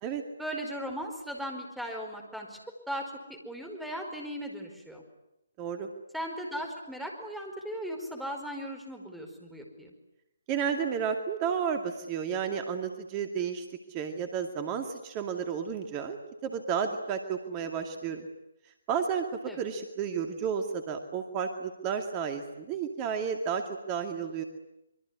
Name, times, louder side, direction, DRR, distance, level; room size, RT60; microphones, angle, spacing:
voice 1, 0.4-2.6 2.9-5.0 6.1-9.9 19.4-19.6, equal, ahead, 2 dB, 5.0 m, -37 dB
voice 2, 5.6-5.9 10.5-18.3 18.9-19.3 19.6-24.4, right 7 dB, 25° right, 6 dB, 2.3 m, -32 dB
25.0 x 24.0 x 9.8 m, 0.88 s
figure-of-eight pair, 140°, 0 cm